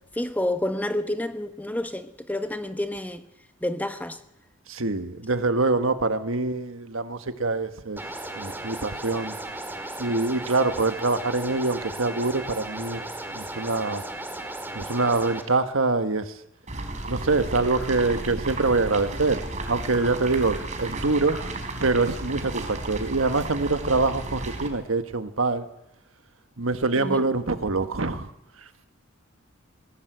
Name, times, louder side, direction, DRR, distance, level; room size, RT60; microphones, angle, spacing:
voice 1, 0.2-3.2 3.6-4.2 27.0-27.3, left 1 dB, 10° left, 1.1 m, -29 dB
voice 2, 4.7-8.0 8.4-9.3 10.0-13.0 13.3-14.0 14.7-16.3 17.1-19.4 19.7-21.4 21.8-25.6 26.6-28.3, right 3 dB, 75° right, 1.5 m, -25 dB
sound 1, 8.0-15.4, right 1 dB, 10° right, 2.1 m, -36 dB
sound 2, 16.7-24.7, right 2 dB, 35° right, 3.7 m, -33 dB
20.5 x 17.5 x 8.0 m
head